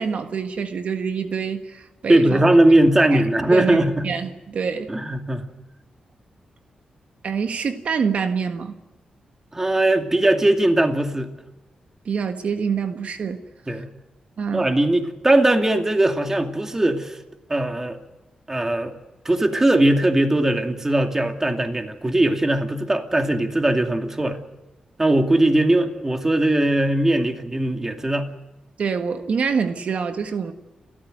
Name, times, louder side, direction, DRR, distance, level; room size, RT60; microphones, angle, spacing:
voice 1, 0.0-2.4 3.1-3.2 3.5-4.9 7.2-8.8 12.0-13.4 14.4-14.7 28.8-30.5, right 6 dB, 65° right, 7 dB, 1.6 m, -26 dB
voice 2, 2.1-4.0 4.9-5.4 9.5-11.3 13.7-13.9 14.5-17.2 17.5-18.0 18.5-18.9 19.2-24.4 25.0-28.3, right 1 dB, 20° right, 5 dB, 2.5 m, -19 dB
29.5 x 14.0 x 7.9 m, 1.0 s
cardioid pair, 100°, 2 cm